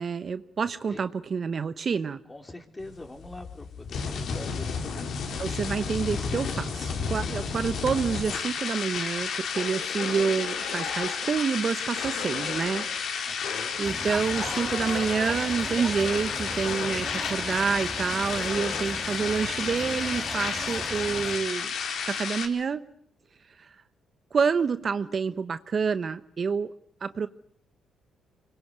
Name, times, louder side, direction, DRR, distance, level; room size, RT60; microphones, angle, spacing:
voice 1, 0.0-2.2 5.4-12.9 13.8-21.7 22.0-22.8 23.6-23.7 24.3-26.7 27.0-27.3, right 5 dB, 45° right, 13 dB, 1.0 m, -28 dB
voice 2, 2.3-5.2 13.2-13.8, left 2 dB, 20° left, 5 dB, 4.1 m, -44 dB
sound 1, 2.8-22.5, left 6 dB, 65° left, 4.3 m, -32 dB
sound 2, 9.5-11.2 11.9-12.8 13.4-13.9 14.3-15.3 16.0-17.0 18.1-18.8, left 7 dB, 85° left, 5.3 m, -38 dB
sound 3, 13.8-21.4, equal, ahead, 5.6 m, -38 dB
25.5 x 22.5 x 8.1 m, 0.66 s
cardioid pair, 90°, 0 cm